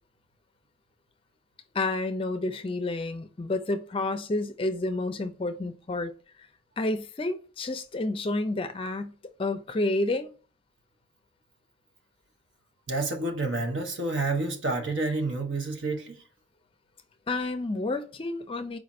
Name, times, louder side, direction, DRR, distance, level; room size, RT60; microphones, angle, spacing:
voice 1, 1.7-6.1 6.4-6.5 6.8-9.1 9.4-10.3 17.3-18.8, left 2 dB, 30° left, 0.4 m, -30 dB
voice 2, 12.9-16.2, right 2 dB, 80° right, 0.8 m, -29 dB
4.8 x 2.5 x 4.1 m
head